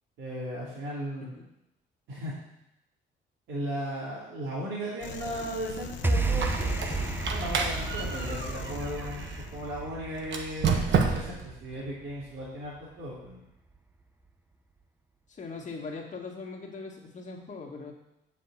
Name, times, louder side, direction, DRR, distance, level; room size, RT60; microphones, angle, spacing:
voice 1, 0.2-1.4 2.1-2.3 3.5-6.7 7.3-13.4, equal, 85° right, -8 dB, 2.8 m, -36 dB
sound 1, 5.0-9.9, left 8 dB, 65° left, 0.9 m, -42 dB
sound 2, 6.0-12.5, right 3 dB, 10° right, 0.6 m, -32 dB
Squeak, 6.2-9.4 10.2-11.5, right 5 dB, 70° right, 1.2 m, -30 dB
voice 2, 15.4-17.9, left 4 dB, 40° left, -1 dB, 2.1 m, -40 dB
7.5 x 5.7 x 7.5 m, 0.86 s
cardioid pair, 90°, 20 cm